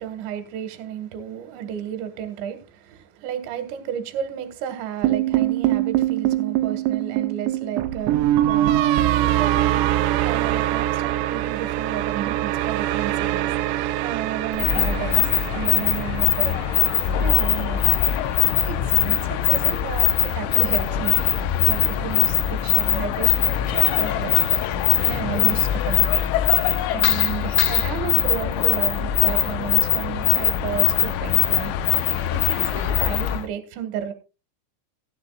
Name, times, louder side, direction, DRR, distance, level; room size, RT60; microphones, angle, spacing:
voice 1, 0.0-8.7 9.3-9.9 10.2-16.6 17.2-18.0 18.5-24.3 24.7-26.2 26.9-31.7 32.3-34.1, right 9 dB, 65° right, 3.8 m, -32 dB
sound 1, 5.0-17.2, right 13 dB, 85° right, 3.5 m, -23 dB
sound 2, 14.5-33.5, left 12 dB, 80° left, 3.2 m, -21 dB
17.0 x 11.0 x 2.4 m
omnidirectional pair, 5.9 m